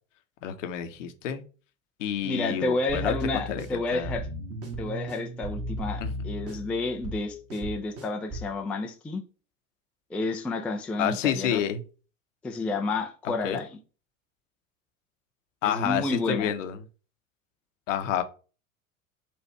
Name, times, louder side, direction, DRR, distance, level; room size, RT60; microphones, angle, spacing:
voice 1, 0.4-1.4 2.0-3.7 3.9-4.2 6.0-6.1 11.0-11.8 13.2-13.6 15.6-16.8 17.9-18.2, left 9 dB, 65° left, 0.9 m, -29 dB
voice 2, 2.2-4.3 4.8-9.2 10.1-11.6 12.4-13.7 15.6-16.5, left 2 dB, 5° left, 0.3 m, -30 dB
sound 1, 2.9-8.5, right 1 dB, 35° right, 1.6 m, -36 dB
4.2 x 2.6 x 4.5 m
figure-of-eight pair, 80°, 41 cm